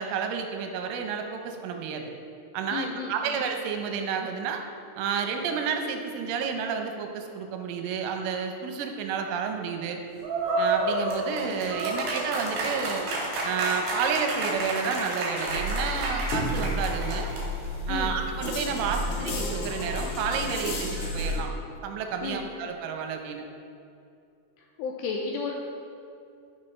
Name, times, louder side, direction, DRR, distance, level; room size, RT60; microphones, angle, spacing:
voice 1, 0.0-2.1 2.5-4.6 5.0-10.0 10.6-13.0 13.4-17.3 17.9-21.5 21.8-23.5, right 6 dB, 85° right, 4 dB, 3.3 m, -30 dB
voice 2, 2.7-3.4 17.9-18.1 22.2-22.5 24.8-25.5, left 5 dB, 85° left, 0 dB, 2.4 m, -33 dB
sound 1, 10.2-17.7, right 2 dB, 65° right, 4.2 m, -30 dB
sound 2, 15.5-21.4, left 1 dB, 65° left, 3.8 m, -31 dB
15.0 x 6.1 x 3.2 m, 2.5 s
omnidirectional pair, 5.5 m